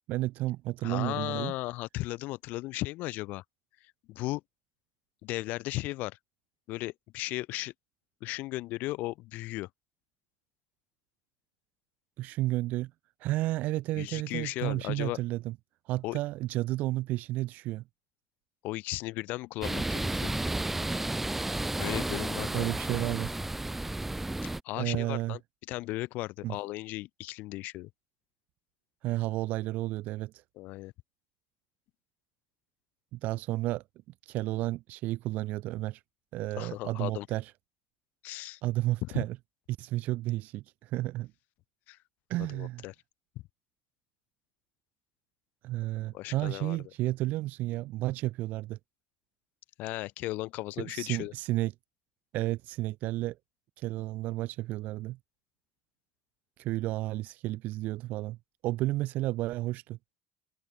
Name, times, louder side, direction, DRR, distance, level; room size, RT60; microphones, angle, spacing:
voice 1, 0.1-1.5 12.2-12.9 13.2-15.5 15.9-17.8 22.5-23.3 24.7-25.4 26.4-26.6 29.0-30.3 33.1-33.8 34.3-36.0 36.3-37.5 38.6-39.4 39.8-41.3 42.3-42.8 45.6-48.8 50.8-51.7 52.3-53.4 53.8-55.2 56.6-58.4 58.6-60.0, right 17 dB, 70° right, 1.3 m, -32 dB
voice 2, 0.8-3.4 4.1-4.4 5.2-6.2 6.7-7.7 8.2-9.7 13.9-15.2 16.0-16.2 18.6-20.4 21.8-22.8 24.4-25.4 25.7-27.9 30.6-30.9 36.5-37.3 38.2-38.6 39.0-39.2 41.9-42.0 42.5-42.9 46.1-46.8 49.8-51.3, left 19 dB, 70° left, 0.5 m, -36 dB
sound 1, 19.6-24.6, right 2 dB, 10° right, 0.5 m, -32 dB
cardioid pair, 120°, 3 cm